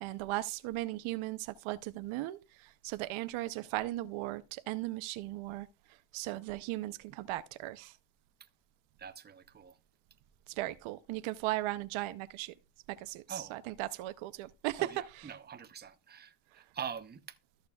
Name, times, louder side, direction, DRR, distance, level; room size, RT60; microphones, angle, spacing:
voice 1, 0.0-5.7 6.1-7.9 10.6-12.5 12.9-14.9, right 17 dB, 80° right, 0.8 m, -37 dB
voice 2, 9.0-9.8 13.3-13.6 14.8-17.4, right 7 dB, 20° right, 0.8 m, -44 dB
14.0 x 6.6 x 2.4 m
cardioid pair, 120°, 48 cm